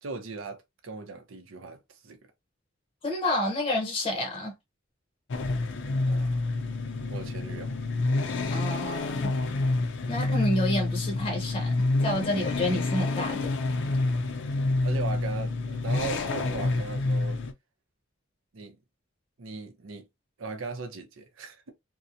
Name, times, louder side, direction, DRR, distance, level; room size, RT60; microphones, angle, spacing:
voice 1, 0.0-2.2 6.1-6.4 7.1-7.8 14.8-17.4 18.5-18.8 19.4-20.1 20.4-21.7, right 4 dB, 85° right, 0.6 m, -38 dB
voice 2, 3.0-4.5 8.5-9.3 10.1-11.7 12.0-13.4, left 1 dB, 25° left, 0.6 m, -29 dB
sound 1, 5.3-17.5, left 2 dB, 65° left, 0.4 m, -28 dB
2.8 x 2.0 x 2.4 m
head